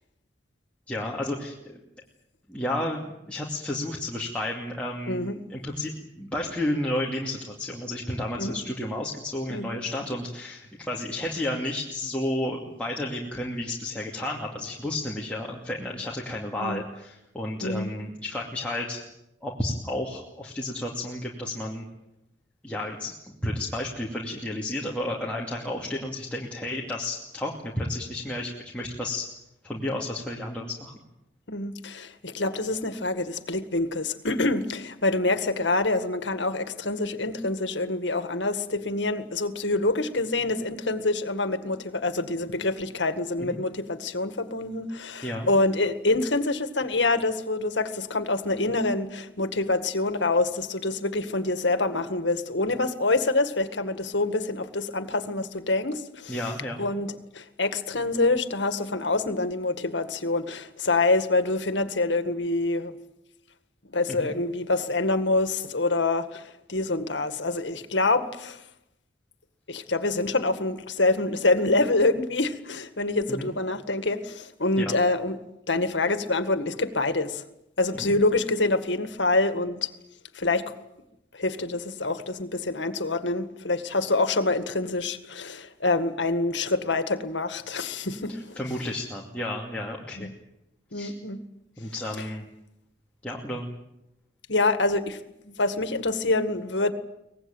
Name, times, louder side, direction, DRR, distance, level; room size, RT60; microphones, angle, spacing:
voice 1, 0.9-1.8 2.5-5.2 5.5-19.0 19.4-21.9 22.6-29.3 29.6-30.9 43.4-43.6 45.2-45.5 56.3-56.8 64.2-64.3 73.3-73.5 74.8-74.9 77.9-78.1 88.3-90.3 90.9-91.1 91.8-92.5 93.2-93.7, left 1 dB, 5° left, -3 dB, 2.5 m, -32 dB
voice 2, 5.1-5.4 8.4-8.6 9.5-9.7 16.6-16.8 17.6-17.9 31.5-56.4 56.8-62.9 63.9-68.6 69.7-75.4 75.7-77.5 77.8-79.9 80.3-80.7 81.3-88.6 90.2-90.3 90.9-91.4 94.5-95.2 95.5-96.9, left 2 dB, 80° left, 10 dB, 1.9 m, -26 dB
24.0 x 19.0 x 9.1 m, 0.86 s
head